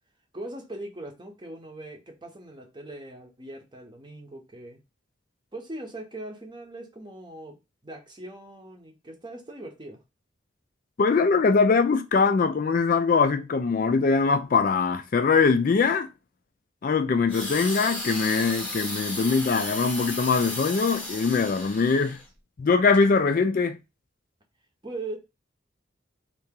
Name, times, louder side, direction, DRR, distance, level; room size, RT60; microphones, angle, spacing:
voice 1, 0.3-4.8 5.5-10.0 24.8-25.2, right 2 dB, 25° right, 0.7 m, -40 dB
voice 2, 11.0-16.1 16.8-22.2 22.6-23.8, left 4 dB, 45° left, 0.3 m, -22 dB
sound 1, 17.3-22.2 22.9-23.1, left 1 dB, 5° left, 0.9 m, -34 dB
2.8 x 2.7 x 3.6 m
head